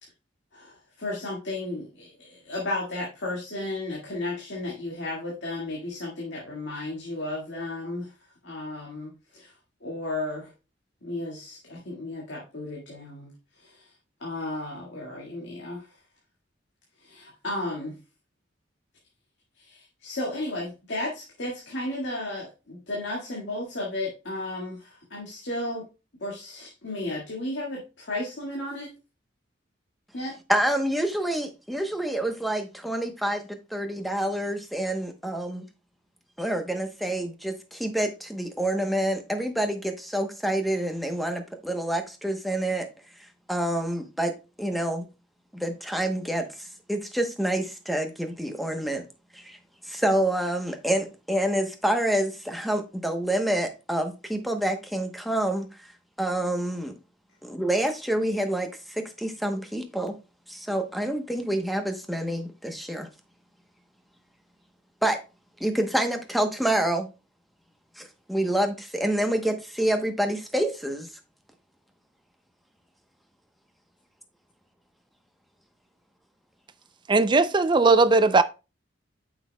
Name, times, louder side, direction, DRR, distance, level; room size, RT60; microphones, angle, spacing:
voice 1, 0.5-8.1 8.4-9.5 9.8-10.5 11.0-13.9 14.2-16.0 17.0-18.0 19.5-25.9 26.2-28.9 30.1-30.4, left 2 dB, 65° left, 1.9 m, -34 dB
voice 2, 30.5-35.6 36.4-42.9 43.5-44.3 44.6-45.0 45.5-49.0 49.3-49.6 49.9-55.7 56.2-56.9 57.4-60.1 60.5-63.1 65.0-65.2 65.6-67.1 68.0-71.1, right 1 dB, ahead, 0.9 m, -27 dB
voice 3, 77.1-78.4, right 3 dB, 25° right, 0.4 m, -18 dB
8.8 x 6.3 x 2.2 m
head